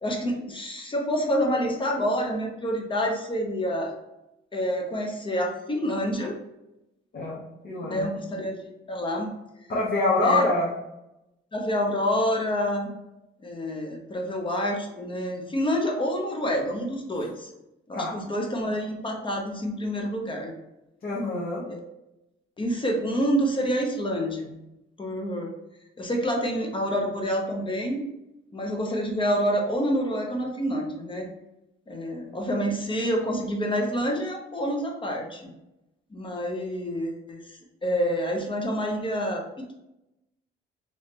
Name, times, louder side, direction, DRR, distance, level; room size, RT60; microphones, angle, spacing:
voice 1, 0.0-3.9 4.5-6.4 7.9-8.5 8.9-9.4 10.2-10.5 11.5-12.9 13.4-17.5 17.9-20.5 21.7-21.8 22.6-24.6 25.0-25.5 26.0-28.1 28.5-31.3 31.9-35.5 36.1-39.7, equal, 25° left, 2 dB, 0.8 m, -27 dB
voice 2, 7.6-8.1 9.7-10.7 17.9-18.1 21.0-21.6, left 2 dB, 50° left, -5 dB, 1.0 m, -25 dB
3.1 x 3.0 x 2.9 m, 0.91 s
cardioid pair, 90°, 20 cm